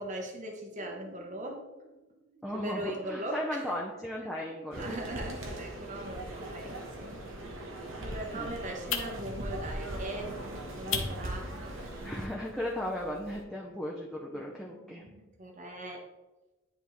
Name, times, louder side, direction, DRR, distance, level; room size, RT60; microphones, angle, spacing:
voice 1, 0.0-1.6 2.5-3.7 4.8-7.1 8.0-10.3 10.8-11.5 15.4-16.0, right 1 dB, 35° right, 2 dB, 0.8 m, -39 dB
sound 1, 0.7-15.6, right 1 dB, 90° right, 1.0 m, -56 dB
voice 2, 2.4-5.2 6.5-6.7 8.3-8.6 12.0-15.0, left 1 dB, 5° left, -3 dB, 0.6 m, -36 dB
sound 2, 4.7-12.3, right 1 dB, 70° right, 1.1 m, -40 dB
sound 3, 8.1-13.4, left 7 dB, 65° left, 0.7 m, -41 dB
10.0 x 3.5 x 3.1 m, 1.1 s
head